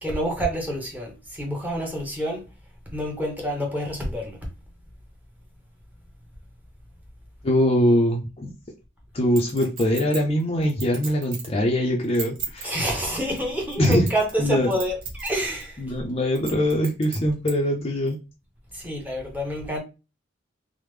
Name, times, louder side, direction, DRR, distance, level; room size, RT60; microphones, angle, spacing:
voice 1, 0.0-2.4 2.9-4.4 12.6-16.0 18.7-19.8, equal, 10° right, 0.8 m, -28 dB
voice 2, 7.4-8.5 9.1-12.7 13.8-14.0 14.4-14.7 15.8-18.2, equal, 30° left, 0.5 m, -22 dB
Chink clink, 9.4-11.6 12.0-12.7 13.3-14.4 14.7-15.3 15.6-15.7 16.4-17.5 18.1-18.2, right 5 dB, 70° right, 1.4 m, -35 dB
3.4 x 2.0 x 3.1 m
head